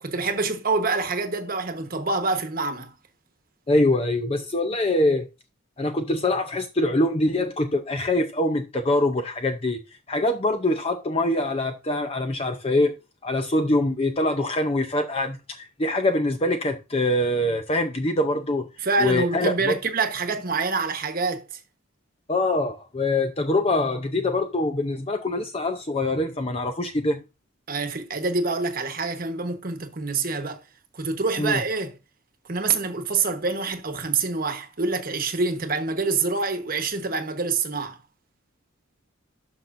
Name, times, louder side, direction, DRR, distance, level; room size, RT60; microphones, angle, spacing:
voice 1, 0.0-2.9 18.8-21.6 27.7-30.6 30.9-32.0 32.5-38.0, right 4 dB, 45° right, 1.2 m, -26 dB
voice 2, 3.7-5.3 5.8-9.8 10.1-12.9 13.2-18.6 19.0-19.7 22.3-27.2 31.4-31.6, left 1 dB, 30° left, 0.6 m, -24 dB
12.0 x 5.8 x 2.6 m
head